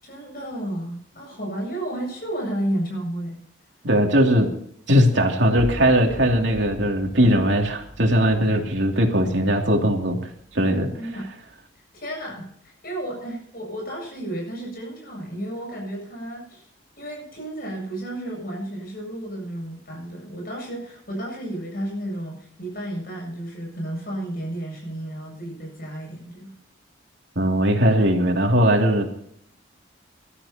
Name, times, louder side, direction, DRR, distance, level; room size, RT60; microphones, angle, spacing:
voice 1, 0.0-3.4 11.0-11.3 11.9-16.7 17.0-26.5, right 1 dB, 50° left, 0 dB, 8.0 m, -32 dB
voice 2, 3.8-4.5 4.9-10.9 27.4-29.1, equal, 70° right, 2 dB, 2.6 m, -19 dB
sound 1, 10.3-11.5, equal, 75° left, 2.6 m, -40 dB
22.5 x 13.0 x 2.9 m, 0.64 s
head